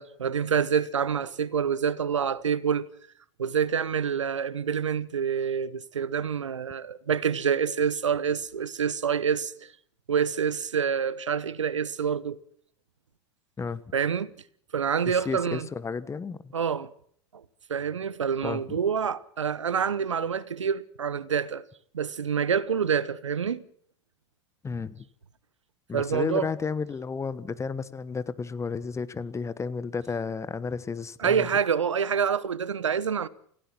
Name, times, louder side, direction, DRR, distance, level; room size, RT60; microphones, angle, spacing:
voice 1, 0.0-2.9 3.4-9.7 10.1-12.4 13.9-14.3 14.7-15.7 16.5-16.9 17.7-21.6 21.9-23.6 25.9-26.5 31.2-33.3, right 7 dB, 90° right, 1.0 m, -27 dB
voice 2, 15.1-16.5 18.4-18.8 24.6-25.0 25.9-31.5, left 5 dB, 20° left, 1.2 m, -32 dB
28.0 x 16.5 x 6.0 m
hypercardioid pair, 85°, 15 cm